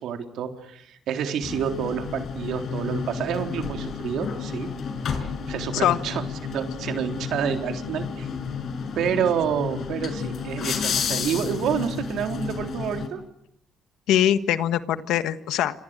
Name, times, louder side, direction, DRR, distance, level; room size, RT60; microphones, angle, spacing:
voice 1, 0.0-4.7 5.5-8.3 9.0-13.2, right 8 dB, 80° right, 5 dB, 3.7 m, -28 dB
sound 1, 1.4-13.1, left 6 dB, 60° left, 5.3 m, -31 dB
voice 2, 14.1-15.8, left 11 dB, 90° left, 11 dB, 1.5 m, -22 dB
29.0 x 26.5 x 6.6 m, 0.70 s
cardioid pair, 90°, 0 cm